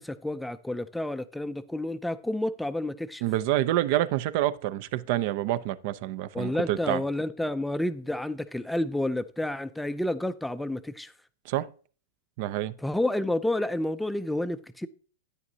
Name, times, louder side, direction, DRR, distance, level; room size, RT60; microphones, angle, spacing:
voice 1, 0.0-3.2 6.3-11.1 12.8-14.9, left 1 dB, 5° left, 0.4 m, -30 dB
voice 2, 3.2-7.0 11.5-11.7 12.4-12.7, right 13 dB, 55° right, 0.5 m, -27 dB
9.7 x 9.3 x 2.7 m
hypercardioid pair, 105°, 0 cm